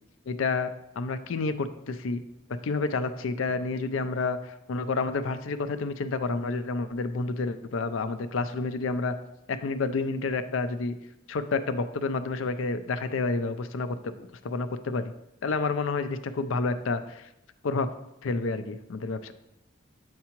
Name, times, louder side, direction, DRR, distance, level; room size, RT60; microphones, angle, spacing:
voice 1, 0.3-2.2 2.6-9.2 9.5-10.9 11.3-15.1 15.4-17.3 17.6-17.9 18.2-19.3, left 3 dB, 75° left, 11 dB, 0.4 m, -29 dB
8.1 x 4.7 x 2.9 m, 0.87 s
head